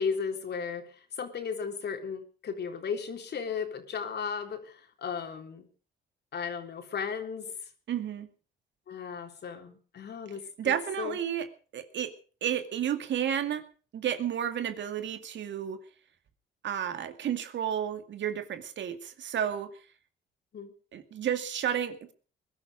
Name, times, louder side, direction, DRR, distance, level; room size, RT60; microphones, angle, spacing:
voice 1, 0.0-5.7 6.3-7.6 8.9-11.2 20.5-20.7, left 6 dB, 55° left, 6 dB, 3.6 m, -35 dB
voice 2, 7.9-8.3 10.6-11.5 11.7-12.1 12.4-13.7 13.9-15.8 16.6-19.7 20.9-22.1, right 9 dB, 65° right, 9 dB, 2.2 m, -31 dB
21.5 x 12.0 x 5.0 m, 0.39 s
cardioid pair, 90°, 20 cm